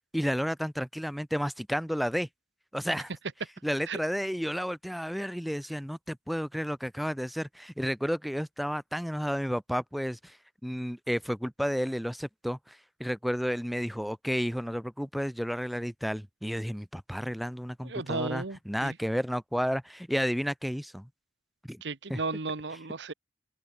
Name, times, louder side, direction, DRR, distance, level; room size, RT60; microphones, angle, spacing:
voice 1, 0.0-2.3 2.7-3.1 3.6-10.4 10.6-21.1 21.7-21.8 22.1-22.2, equal, ahead, 0.8 m, -32 dB
voice 2, 17.8-19.0 21.8-23.1, right 3 dB, 70° right, 1.2 m, -34 dB
open air
head